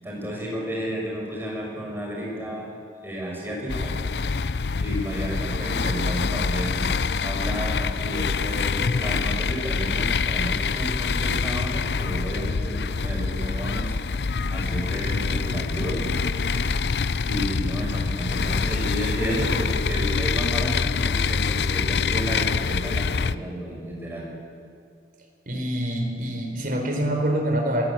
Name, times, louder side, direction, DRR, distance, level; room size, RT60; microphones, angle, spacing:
voice 1, 0.0-2.7 3.0-4.0 4.8-6.9 7.2-14.0 14.5-16.2 17.2-24.3, equal, 15° right, -2 dB, 6.5 m, -32 dB
sound 1, 3.7-23.4, left 5 dB, 70° left, 0.6 m, -25 dB
voice 2, 25.5-27.9, right 1 dB, 50° right, 3 dB, 4.2 m, -25 dB
25.5 x 16.0 x 9.0 m, 2.2 s
head